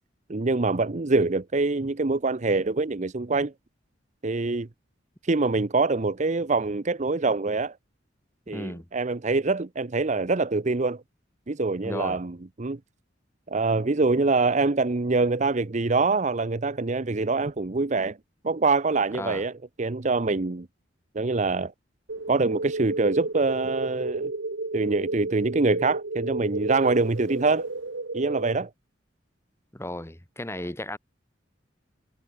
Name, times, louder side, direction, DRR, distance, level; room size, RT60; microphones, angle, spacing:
voice 1, 0.3-3.5 4.2-4.7 5.3-7.8 8.5-11.0 11.5-12.8 13.5-18.2 18.4-19.5 19.8-20.7 21.1-21.7 22.3-24.3 24.7-27.7 28.1-28.7, right 3 dB, 40° right, 0.7 m, -24 dB
voice 2, 8.5-8.9 11.8-12.2 19.1-19.4 29.7-31.0, left 1 dB, 15° left, 2.8 m, -35 dB
sound 1, 22.1-28.5, right 2 dB, 85° right, 1.6 m, -32 dB
head